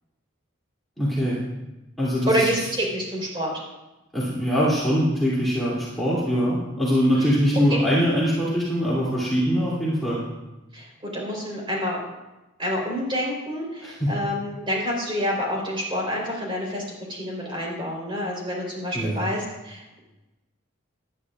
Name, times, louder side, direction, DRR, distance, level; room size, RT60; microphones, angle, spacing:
voice 1, 1.0-1.4 2.0-2.5 4.1-10.2 13.8-14.1 18.9-19.2, equal, ahead, -9 dB, 2.8 m, -23 dB
voice 2, 2.3-3.6 7.2-7.3 7.7-7.8 10.7-12.0 12.6-16.8 17.1-20.0, equal, 25° right, -2 dB, 3.9 m, -28 dB
18.5 x 11.5 x 2.5 m, 1.0 s
head